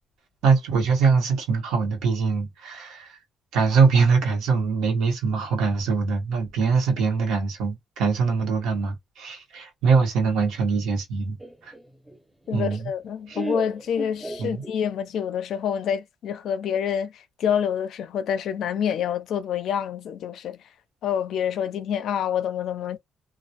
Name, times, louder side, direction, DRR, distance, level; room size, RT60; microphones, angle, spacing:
voice 1, 0.4-3.2 3.5-11.7 12.5-12.9 13.3-13.4 14.4-14.6, right 5 dB, 85° right, 0.9 m, -23 dB
Laughter, 11.4-15.1, right 2 dB, 5° right, 0.6 m, -36 dB
voice 2, 12.5-20.6 21.0-23.0, left 8 dB, 75° left, 0.4 m, -27 dB
2.2 x 2.0 x 2.8 m
cardioid pair, 90°, 0 cm